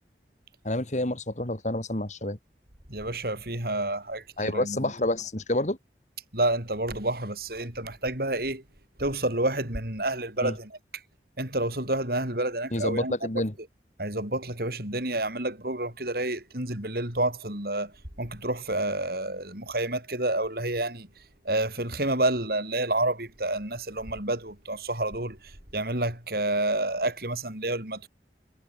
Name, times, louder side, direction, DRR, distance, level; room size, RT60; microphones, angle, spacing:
voice 1, 0.6-2.4 4.4-5.8 10.4-10.6 12.7-13.5, left 1 dB, 40° left, 2.3 m, -28 dB
voice 2, 2.9-4.9 6.3-8.6 9.0-10.8 11.4-13.4 14.0-21.1 21.4-28.1, right 1 dB, 55° right, 7.9 m, -29 dB
head